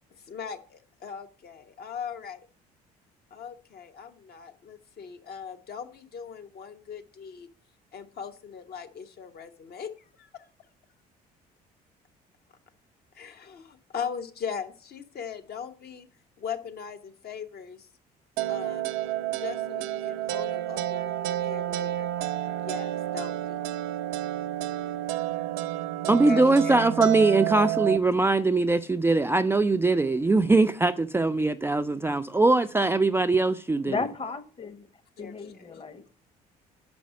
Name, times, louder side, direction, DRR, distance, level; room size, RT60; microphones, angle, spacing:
voice 1, 0.3-2.4 3.3-7.5 7.9-9.9 10.2-10.4 13.1-16.1 16.4-17.9 18.5-18.9 19.3-22.1 22.6-23.3 26.2-26.8 35.2-35.6, left 7 dB, 50° left, 1.1 m, -39 dB
sound 1, 18.4-28.0, right 13 dB, 70° right, 0.6 m, -30 dB
voice 2, 26.0-34.0, right 3 dB, 10° right, 0.4 m, -22 dB
voice 3, 33.8-34.9 35.2-36.1, left 4 dB, 30° left, 1.1 m, -34 dB
6.1 x 5.2 x 5.2 m
hypercardioid pair, 55°, 20 cm